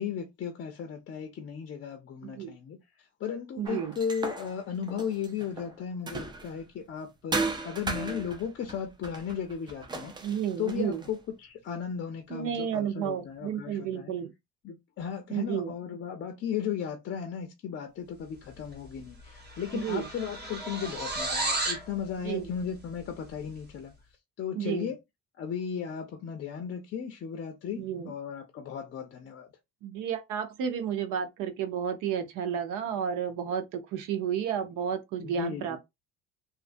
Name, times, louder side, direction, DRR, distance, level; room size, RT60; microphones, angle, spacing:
voice 1, 0.0-2.8 3.2-10.2 10.6-14.1 14.6-23.9 24.4-25.0 25.4-29.5 35.2-35.8, left 7 dB, 40° left, 0.5 m, -35 dB
voice 2, 2.2-2.5 3.6-4.0 10.2-11.0 12.3-14.3 15.3-15.8 19.7-20.1 22.2-22.5 24.6-24.9 27.8-28.1 29.8-35.8, right 8 dB, 80° right, 0.7 m, -32 dB
sound 1, 3.6-6.7 7.3-11.2, right 3 dB, 15° right, 0.4 m, -36 dB
sound 2, 18.7-18.9 19.2-21.9, right 2 dB, 35° right, 1.0 m, -33 dB
2.5 x 2.3 x 2.5 m
cardioid pair, 140°, 31 cm